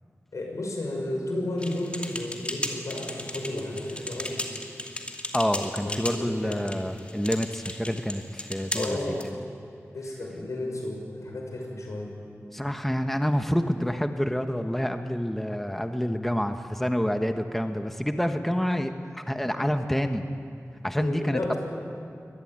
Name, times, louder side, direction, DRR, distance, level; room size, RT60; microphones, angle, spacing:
voice 1, 0.3-4.4 5.8-6.6 8.7-9.2 9.9-12.1 21.0-21.6, left 1 dB, 90° left, 0 dB, 6.2 m, -32 dB
sound 1, 1.6-9.3, left 1 dB, 25° left, 2.5 m, -36 dB
voice 2, 5.3-9.0 9.2-9.4 12.5-20.2 20.8-21.5, equal, 5° left, 6 dB, 1.1 m, -28 dB
24.0 x 20.0 x 8.9 m, 2.4 s
wide cardioid pair, 85°, 5 cm